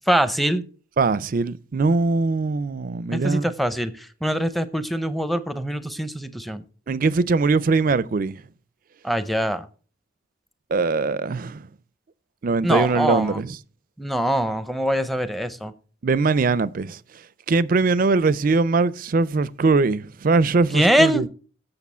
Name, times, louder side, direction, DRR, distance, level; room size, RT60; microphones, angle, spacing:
voice 1, 0.1-0.6 3.1-6.6 9.0-9.7 12.6-13.4 14.0-15.7 20.7-21.2, equal, ahead, 0.6 m, -23 dB
voice 2, 1.0-3.4 6.9-8.4 10.7-11.6 12.4-13.6 16.0-17.0 17.5-21.3, right 3 dB, 45° right, 0.4 m, -21 dB
8.4 x 6.6 x 5.5 m
head